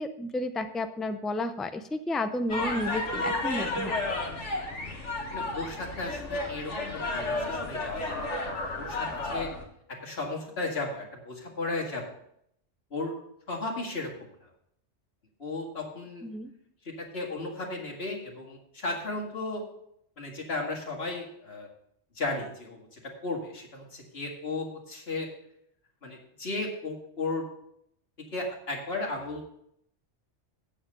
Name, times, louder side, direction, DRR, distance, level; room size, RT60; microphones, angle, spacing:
voice 1, 0.0-3.9 16.2-16.5, left 1 dB, ahead, 8 dB, 0.3 m, -32 dB
sound 1, 2.5-9.6, left 2 dB, 80° left, 1.9 m, -32 dB
voice 2, 5.3-8.3 8.8-9.5 10.0-12.0 12.9-13.1 13.5-14.1 14.4-14.5 15.4-16.3 16.8-19.6 20.2-21.7 22.2-25.3 26.0-27.5 28.3-29.4, left 2 dB, 60° left, 0 dB, 2.3 m, -35 dB
8.6 x 7.6 x 6.7 m, 0.73 s
omnidirectional pair, 1.2 m